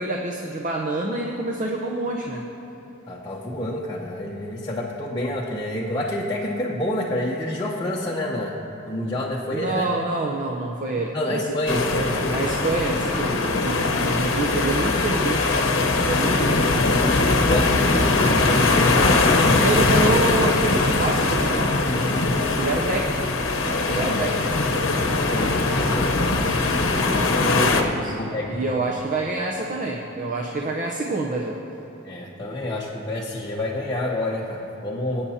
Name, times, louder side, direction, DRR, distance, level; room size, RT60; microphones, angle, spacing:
voice 1, 0.0-2.4 9.5-11.6 12.3-15.6 16.0-16.8 19.6-23.2 23.6-24.3 27.2-31.6, right 2 dB, 40° right, 0 dB, 0.7 m, -27 dB
voice 2, 3.1-8.6 8.8-9.9 11.1-12.5 16.4-17.1 17.4-20.1 24.0-26.3 27.4-28.6 32.0-35.2, left 1 dB, 20° left, -5 dB, 0.8 m, -28 dB
sound 1, 11.7-27.8, left 3 dB, 80° left, 0.9 m, -21 dB
22.0 x 8.7 x 2.8 m, 3.0 s
head